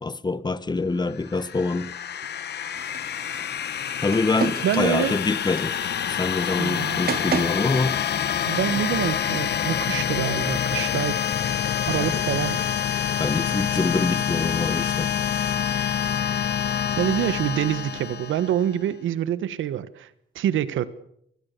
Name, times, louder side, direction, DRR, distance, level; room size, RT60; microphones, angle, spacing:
voice 1, 0.0-1.9 4.0-5.7 6.1-8.0 11.9-12.2 13.2-15.1, left 3 dB, 20° left, 1.1 m, -25 dB
sound 1, 1.1-18.8, left 9 dB, 55° left, 1.2 m, -27 dB
sound 2, 2.7-7.8, right 7 dB, 50° right, 2.4 m, -34 dB
voice 2, 4.6-5.1 6.6-7.0 8.4-11.2 11.9-12.6 16.9-20.1 20.3-20.9, right 11 dB, 75° right, 1.5 m, -26 dB
28.0 x 19.5 x 6.9 m
cardioid pair, 90°, 20 cm